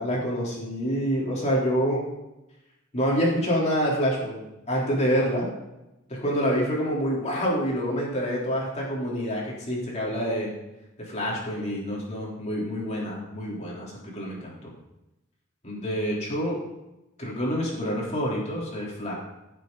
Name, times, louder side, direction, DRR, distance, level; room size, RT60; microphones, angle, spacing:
voice 1, 0.0-2.0 2.9-4.4 4.7-5.5 6.1-10.5 11.0-14.7 15.6-16.6 17.2-19.1, equal, 35° left, -4 dB, 3.7 m, -27 dB
16.5 x 7.5 x 4.0 m, 0.95 s
head